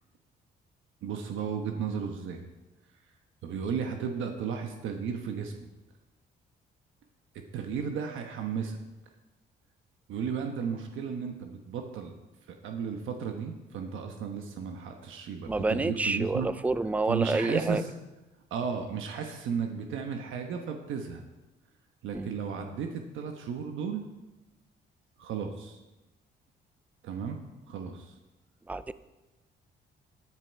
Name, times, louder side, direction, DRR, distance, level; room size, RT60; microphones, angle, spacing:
voice 1, 1.0-2.4 3.4-5.7 7.5-8.8 10.1-12.1 12.5-16.5 17.1-17.9 18.5-21.2 22.0-24.1 25.2-25.8 27.0-27.4 27.7-28.1, right 6 dB, 80° right, 4 dB, 1.2 m, -34 dB
voice 2, 15.5-17.8 22.1-22.3 28.7-28.9, right 2 dB, 5° right, 15 dB, 0.4 m, -28 dB
10.5 x 9.8 x 4.7 m, 1.1 s
cardioid pair, 90°, 20 cm